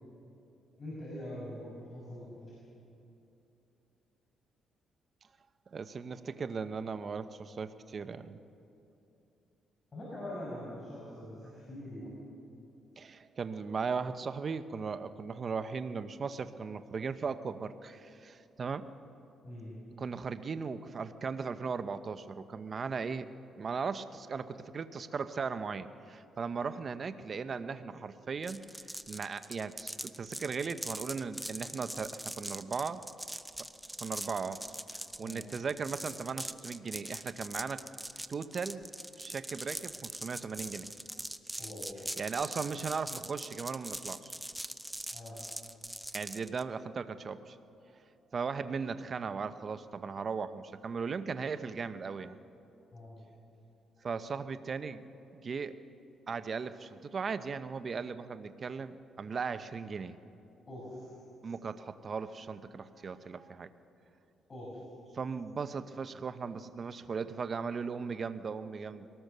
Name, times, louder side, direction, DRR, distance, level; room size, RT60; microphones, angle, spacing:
voice 1, 0.8-2.5 9.9-12.1 19.4-19.7 35.2-35.4 41.6-41.9 45.1-45.4 52.9-53.2 60.7-61.1 64.5-64.7, left 1 dB, 30° left, -6 dB, 6.3 m, -43 dB
voice 2, 5.7-8.4 13.0-18.9 20.0-23.3 23.6-33.0 34.0-34.6 34.9-37.8 38.3-38.8 39.2-40.9 42.2-44.3 46.1-47.6 48.3-52.4 54.0-55.0 55.3-55.8 56.3-60.2 61.4-63.7 65.1-69.1, right 5 dB, 45° right, 11 dB, 0.9 m, -37 dB
sound 1, 28.4-46.6, right 1 dB, 5° right, 0.7 m, -42 dB
22.5 x 18.5 x 6.8 m, 2.8 s
cardioid pair, 90°, 0 cm